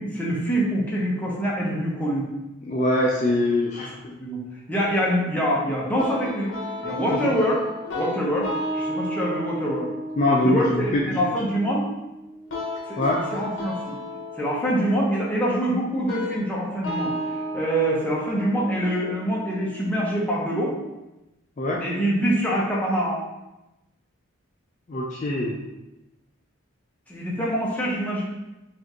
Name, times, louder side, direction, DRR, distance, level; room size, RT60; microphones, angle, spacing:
voice 1, 0.0-2.3 4.2-4.4 4.7-6.6 6.8-7.6 7.9-8.5 8.7-9.9 10.4-11.8 12.9-13.0 13.3-14.0 14.4-17.1 17.5-20.7 21.8-23.2 27.1-28.2, equal, 5° left, -5 dB, 0.7 m, -25 dB
voice 2, 2.7-4.2 10.2-11.2 13.0-13.2 21.6-21.8 24.9-25.6, left 1 dB, 35° left, -3 dB, 0.4 m, -23 dB
sound 1, 6.0-20.9, left 1 dB, 60° left, 0.9 m, -34 dB
5.0 x 2.5 x 2.9 m, 0.98 s
head